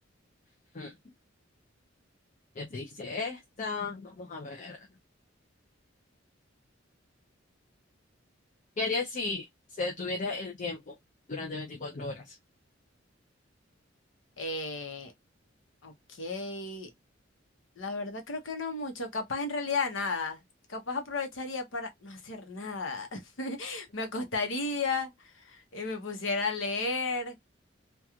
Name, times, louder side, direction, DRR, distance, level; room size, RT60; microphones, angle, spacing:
voice 1, 2.6-4.8 8.8-9.4 9.8-10.9 11.3-12.3, left 3 dB, 40° left, 0.5 m, -34 dB
voice 2, 14.4-15.1 15.8-16.9 17.8-20.4 20.7-27.4, left 3 dB, 70° left, 0.8 m, -34 dB
3.0 x 2.3 x 2.3 m
head